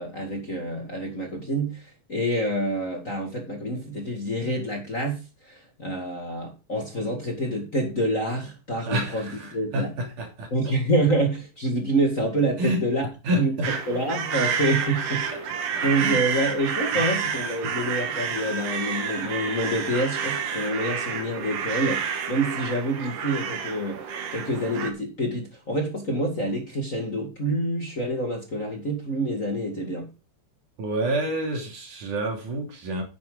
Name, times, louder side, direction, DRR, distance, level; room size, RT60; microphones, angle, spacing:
voice 1, 0.0-9.9 10.5-13.1 13.4-15.5 15.8-24.0 24.3-30.1, right 1 dB, 30° left, 2.0 m, -27 dB
voice 2, 8.9-10.5 12.6-12.8 13.2-13.7 15.7-16.4 17.0-17.1 17.6-17.7 30.8-33.0, right 1 dB, 70° right, 4.6 m, -29 dB
sound 1, 13.6-24.9, right 7 dB, 85° right, 3.2 m, -29 dB
10.0 x 9.8 x 3.9 m
omnidirectional pair, 3.7 m